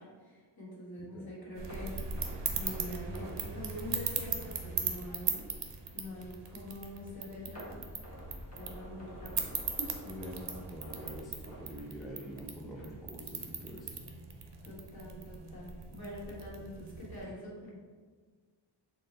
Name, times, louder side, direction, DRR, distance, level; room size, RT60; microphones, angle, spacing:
voice 1, 0.0-1.9 2.5-5.5 5.9-7.9 8.5-9.9 14.6-17.8, left 1 dB, 50° left, -7 dB, 1.5 m, -45 dB
sound 1, 1.6-17.2, right 5 dB, 65° right, 0.6 m, -39 dB
sound 2, 1.7-4.7 5.0-5.2 5.7-5.8 7.5-12.5 12.7-13.0 13.4-13.5, equal, 35° left, 1.1 m, -50 dB
voice 2, 10.1-14.0 17.2-17.3, equal, ahead, -3 dB, 0.4 m, -45 dB
4.3 x 2.0 x 3.8 m, 1.5 s
wide cardioid pair, 60°, 46 cm